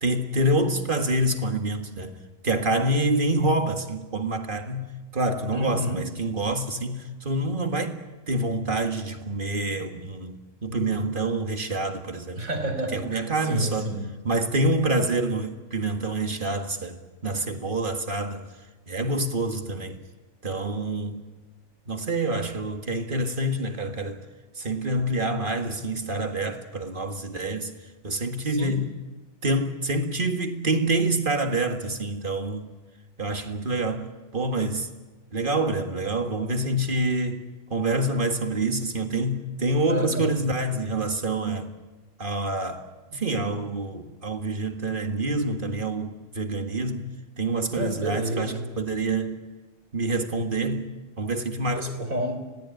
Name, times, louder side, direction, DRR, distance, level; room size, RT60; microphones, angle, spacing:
voice 1, 0.0-2.2 2.4-8.0 8.3-12.4 12.9-13.9 14.2-18.5 18.9-20.0 20.4-21.3 21.9-24.2 24.6-27.7 28.0-28.9 29.4-32.7 33.2-34.9 35.3-37.4 37.7-41.7 42.2-49.4 49.9-50.9 51.2-51.9, right 2 dB, 40° right, 1.9 m, -27 dB
voice 2, 5.5-6.1 12.4-14.1 28.4-28.8 39.9-40.3 47.7-48.7 51.8-52.4, right 1 dB, 75° right, 3.9 m, -30 dB
26.0 x 17.5 x 9.0 m
omnidirectional pair, 1.4 m